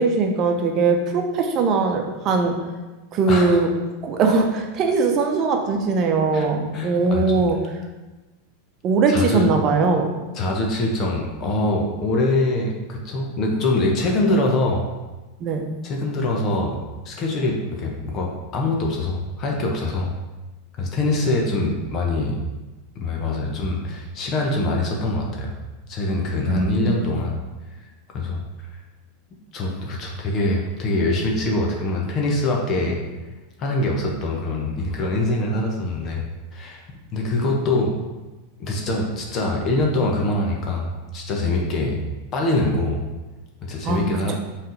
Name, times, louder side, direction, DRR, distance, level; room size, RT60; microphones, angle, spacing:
voice 1, 0.0-2.6 3.1-3.7 4.0-7.6 8.8-10.1 15.4-15.7 26.5-27.2 43.8-44.3, right 4 dB, 40° right, 4 dB, 0.8 m, -21 dB
voice 2, 3.3-3.6 6.3-6.5 6.7-7.2 9.1-9.5 10.3-14.9 15.8-16.8 17.0-20.1 20.8-22.4 23.0-25.5 25.9-27.4 28.1-28.4 29.5-33.0 33.6-36.2 36.5-36.8 37.1-37.9 38.6-42.0 42.3-43.0 43.6-44.3, left 2 dB, 35° left, 0 dB, 1.0 m, -23 dB
5.7 x 3.4 x 5.1 m, 1.2 s
figure-of-eight pair, 90°, 0 cm